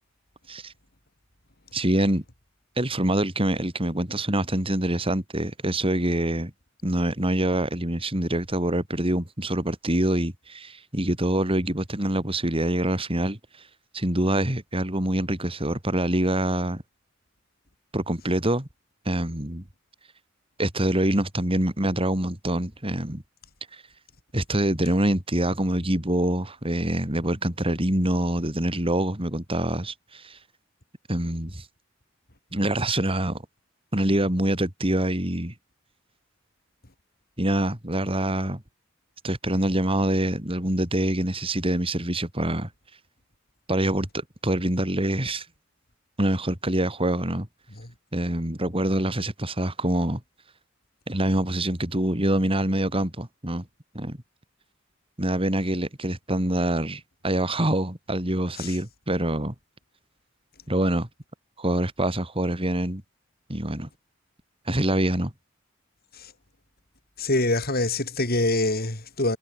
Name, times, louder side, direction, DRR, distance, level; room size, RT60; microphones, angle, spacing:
voice 1, 1.7-2.2 2.8-6.5 6.8-13.4 13.9-16.8 17.9-18.7 19.1-19.6 20.6-23.2 23.7-23.8 24.3-30.4 31.1-31.7 32.5-33.4 33.9-35.5 37.4-38.6 39.2-42.7 43.7-45.5 46.2-47.5 48.1-50.2 51.1-53.6 53.9-54.2 55.2-59.5 60.7-61.1 61.6-63.0 63.5-63.9 64.7-65.3, right 1 dB, 30° right, 4.0 m, -25 dB
voice 2, 67.2-69.4, left 2 dB, 50° left, 5.5 m, -25 dB
head